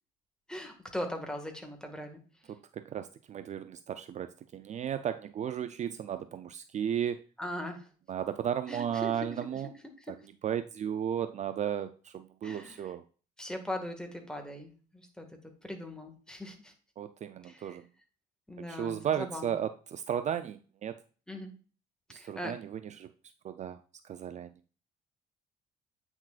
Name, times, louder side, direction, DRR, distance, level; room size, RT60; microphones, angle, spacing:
voice 1, 0.5-2.2 7.4-7.9 8.7-9.6 10.0-10.2 12.4-12.9 13.4-16.7 17.4-17.8 18.5-19.6 21.3-21.5 22.1-22.6, left 1 dB, 5° left, 4 dB, 1.7 m, -40 dB
voice 2, 2.5-7.2 8.1-9.7 10.1-10.2 10.4-13.0 17.0-17.9 18.6-21.0 22.1-23.1 23.4-23.8 24.0-24.5, right 9 dB, 45° right, 11 dB, 0.5 m, -34 dB
8.8 x 6.2 x 2.4 m, 0.38 s
cardioid pair, 110°, 17 cm